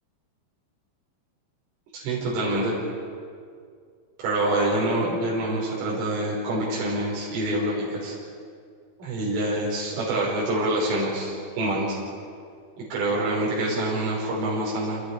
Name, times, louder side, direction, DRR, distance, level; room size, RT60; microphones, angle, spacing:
voice 1, 1.9-2.7 4.2-8.2 9.0-12.0 12.9-15.0, right 1 dB, 85° right, -6 dB, 8.5 m, -26 dB
29.5 x 29.0 x 5.1 m, 2.2 s
omnidirectional pair, 5.6 m